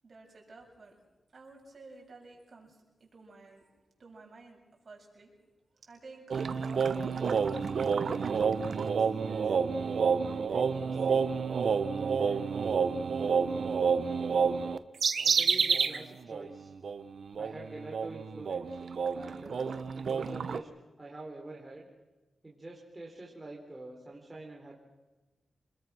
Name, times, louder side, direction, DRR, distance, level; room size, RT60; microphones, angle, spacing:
voice 1, 0.0-1.0 1.3-5.4 5.7-9.6 10.2-12.6 13.4-13.5, right 3 dB, 50° right, 0 dB, 7.4 m, -53 dB
sound 1, 6.3-16.0 16.3-16.5 16.8-20.6, right 6 dB, 70° right, 1.1 m, -29 dB
voice 2, 15.4-16.7 17.4-18.7 19.1-20.7 21.0-21.9 22.4-24.8, right 2 dB, 20° right, -2 dB, 4.2 m, -45 dB
27.5 x 21.0 x 6.4 m, 1.1 s
wide cardioid pair, 95°, 0 cm